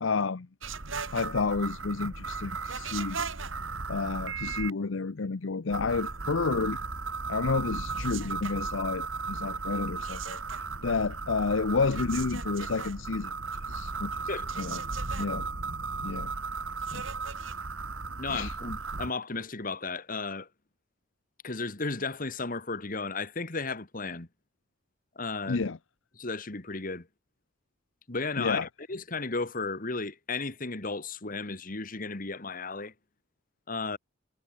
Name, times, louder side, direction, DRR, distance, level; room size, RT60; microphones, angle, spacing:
voice 1, 0.0-0.5 1.1-3.2 3.9-6.8 7.3-13.3 13.7-14.1 14.6-14.8 15.2-15.5 16.0-16.3 16.9-17.0 18.3-18.5 25.5-25.8 28.4-28.7, left 4 dB, 75° left, 0.7 m, -30 dB
sound 1, 0.6-4.7 5.7-19.1, right 4 dB, 90° right, 2.8 m, -35 dB
voice 2, 18.2-20.5 21.4-24.3 25.2-25.6 26.2-27.1 28.1-32.9 33.7-34.0, left 3 dB, 45° left, 1.9 m, -34 dB
head